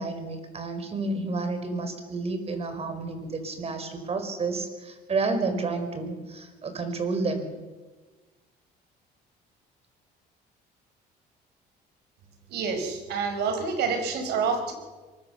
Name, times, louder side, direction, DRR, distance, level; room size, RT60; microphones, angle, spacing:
voice 1, 0.0-7.5, right 3 dB, 35° right, 8 dB, 5.0 m, -30 dB
voice 2, 12.5-14.7, right 5 dB, 80° right, 6 dB, 5.1 m, -28 dB
24.0 x 21.5 x 7.1 m, 1.3 s
cardioid pair, 110°, 17 cm